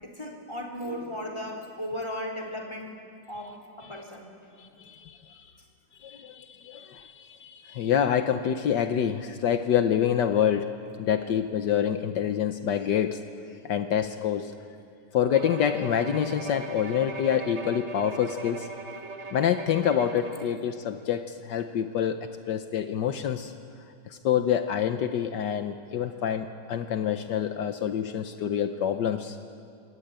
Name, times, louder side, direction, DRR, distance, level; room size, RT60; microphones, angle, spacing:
voice 1, 0.0-2.9 3.3-3.5 3.8-4.3 11.1-11.3, left 1 dB, 15° left, -1 dB, 3.7 m, -36 dB
voice 2, 4.6-5.5 6.0-10.7 11.0-13.2 13.6-14.5 15.1-18.7 19.3-23.5 24.1-29.4, left 9 dB, 75° left, 8 dB, 1.5 m, -27 dB
Bowed string instrument, 15.3-20.7, right 3 dB, 40° right, 1.5 m, -39 dB
26.5 x 22.0 x 9.0 m, 2.4 s
omnidirectional pair, 1.9 m